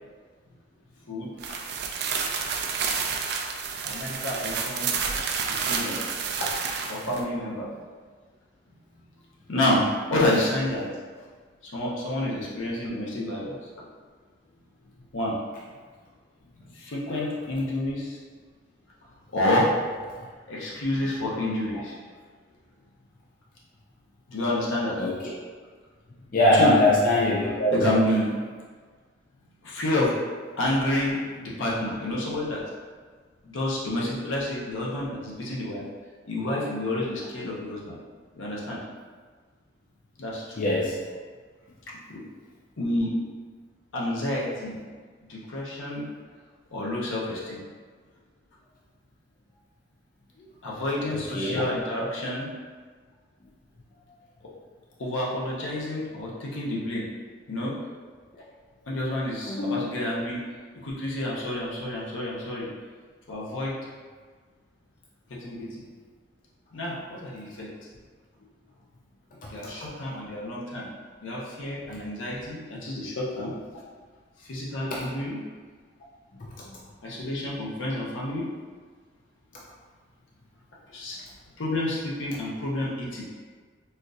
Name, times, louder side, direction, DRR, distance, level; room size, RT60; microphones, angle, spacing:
sound 1, 1.4-7.2, right 6 dB, 55° right, 0.3 m, -30 dB
voice 1, 3.8-4.9 5.5-6.0 6.9-7.7 9.5-10.9 11.7-13.9 15.1-15.4 16.7-18.2 19.3-19.8 20.5-22.0 24.3-25.0 26.5-26.7 27.7-28.3 29.6-30.1 30.6-32.6 33.4-35.9 36.3-38.0 38.3-38.8 40.2-40.4 42.1-42.2 42.8-43.2 43.9-44.8 45.3-46.1 46.7-47.6 50.6-52.5 55.0-57.1 57.5-57.8 58.9-60.4 60.8-62.7 63.3-63.8 65.3-65.8 66.7-67.7 69.5-70.9 71.2-73.5 74.4-75.4 77.0-78.5 80.9-81.2 81.6-83.2, left 1 dB, 85° left, -5 dB, 0.8 m, -29 dB
voice 2, 26.3-27.8 40.6-40.9 51.1-51.6 59.5-59.8, left 1 dB, 45° left, -5 dB, 0.4 m, -22 dB
4.3 x 2.5 x 2.5 m, 1.5 s
head